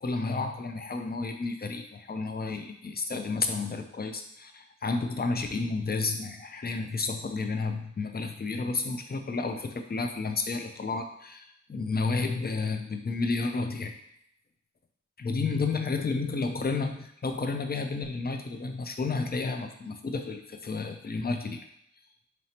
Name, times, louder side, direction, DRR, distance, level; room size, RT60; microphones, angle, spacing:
voice 1, 0.0-13.9 15.2-21.7, left 3 dB, 35° left, 6 dB, 0.5 m, -31 dB
4.0 x 3.0 x 2.8 m, 0.73 s
wide cardioid pair, 45°, 30 cm